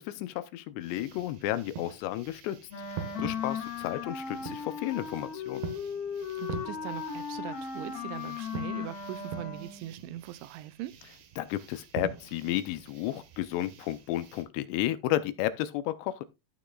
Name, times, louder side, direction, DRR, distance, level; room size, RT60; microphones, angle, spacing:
voice 1, 0.0-2.6 3.2-5.6 11.4-16.2, left 14 dB, 80° left, 2.6 m, -32 dB
sound 1, 0.8-14.4, right 7 dB, 70° right, 3.1 m, -45 dB
Wind instrument woodwind instrument, 2.7-9.9, left 6 dB, 65° left, 3.4 m, -37 dB
voice 2, 6.4-10.9, right 14 dB, 85° right, 2.9 m, -41 dB
15.0 x 6.2 x 2.3 m
omnidirectional pair, 5.2 m